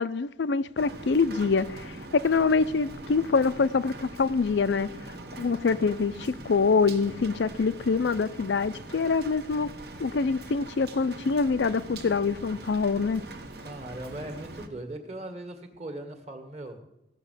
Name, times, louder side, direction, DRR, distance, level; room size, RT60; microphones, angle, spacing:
voice 1, 0.0-4.9 5.4-9.7 10.0-13.2, left 4 dB, 75° left, 0.5 m, -25 dB
Rain, 0.8-14.7, right 2 dB, 55° right, 1.2 m, -42 dB
voice 2, 13.6-16.8, right 1 dB, 35° right, 1.6 m, -39 dB
15.5 x 6.6 x 8.0 m
head